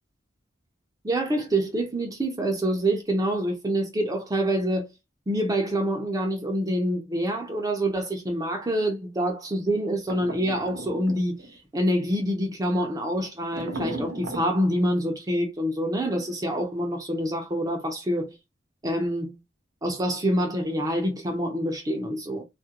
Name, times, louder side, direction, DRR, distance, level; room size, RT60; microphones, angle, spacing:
voice 1, 1.0-4.9 5.3-18.3 18.8-19.3 19.8-22.4, right 1 dB, 20° right, 0.5 m, -26 dB
sound 1, 10.1-11.5 13.5-14.5, right 1 dB, 85° right, 0.6 m, -36 dB
2.3 x 2.1 x 2.8 m
head